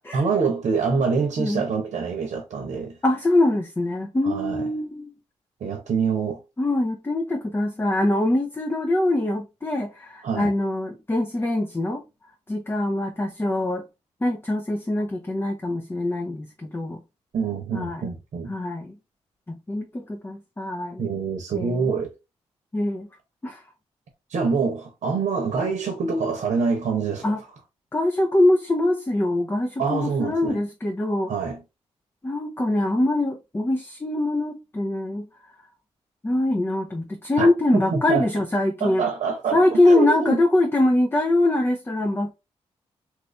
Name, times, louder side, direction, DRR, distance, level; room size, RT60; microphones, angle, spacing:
voice 1, 0.1-3.0 4.2-4.7 5.6-6.4 10.2-10.5 17.3-18.5 21.0-22.1 24.3-27.2 29.8-30.6 31.3-31.6 37.4-37.5 37.9-38.2 38.8-40.4, right 5 dB, 70° right, 0.9 m, -25 dB
voice 2, 3.0-5.1 6.6-12.0 12.5-13.8 14.2-17.0 17.7-18.0 18.5-18.9 19.5-21.0 21.5-21.9 22.7-23.1 23.4-23.6 27.2-27.4 27.9-31.3 32.2-35.3 36.2-39.1 39.5-42.3, left 1 dB, 20° left, 0.7 m, -23 dB
3.1 x 2.5 x 3.1 m
supercardioid pair, 50°, 12 cm